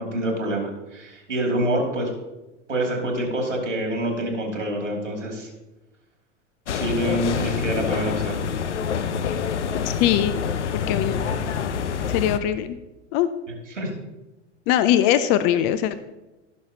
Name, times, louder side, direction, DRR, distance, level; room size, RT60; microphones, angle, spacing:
voice 1, 0.0-2.1 2.7-5.5 6.7-8.5 13.7-13.9, right 1 dB, 85° right, 1 dB, 2.6 m, -26 dB
sound 1, 6.7-12.4, left 7 dB, 75° left, 0.7 m, -26 dB
voice 2, 10.0-10.4 10.9-11.2 12.1-12.8 13.1-13.3 14.7-16.0, left 11 dB, 35° left, 13 dB, 0.5 m, -21 dB
16.0 x 6.3 x 2.8 m, 1.0 s
figure-of-eight pair, 95°, 36 cm